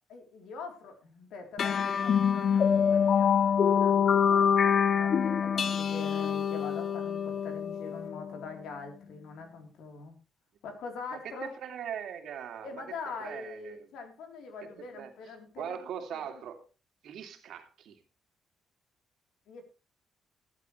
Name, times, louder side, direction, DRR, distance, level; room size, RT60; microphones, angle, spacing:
voice 1, 0.1-10.2 10.6-11.5 12.6-16.4 19.5-19.6, left 4 dB, 80° left, 5 dB, 3.6 m, -44 dB
sound 1, 1.6-8.5, left 7 dB, 55° left, 0.6 m, -25 dB
voice 2, 11.1-12.8 13.2-13.9 14.6-15.1 15.6-16.7 17.0-18.0, right 8 dB, 75° right, 6 dB, 2.6 m, -41 dB
14.5 x 13.0 x 3.2 m, 0.29 s
cardioid pair, 90°, 0 cm